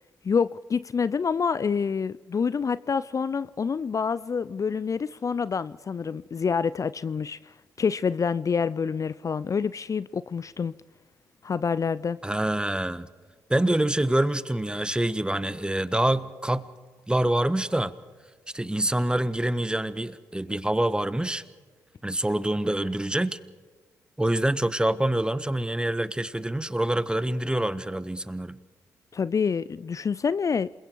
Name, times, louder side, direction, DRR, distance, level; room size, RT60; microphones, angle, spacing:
voice 1, 0.2-10.7 11.4-12.2 29.1-30.8, left 6 dB, 45° left, 0.5 m, -27 dB
voice 2, 12.2-13.1 13.5-16.7 17.1-17.9 18.5-21.4 22.0-23.4 24.2-28.6, right 1 dB, 10° right, 1.4 m, -26 dB
28.0 x 22.0 x 4.7 m
hypercardioid pair, 40°, 8 cm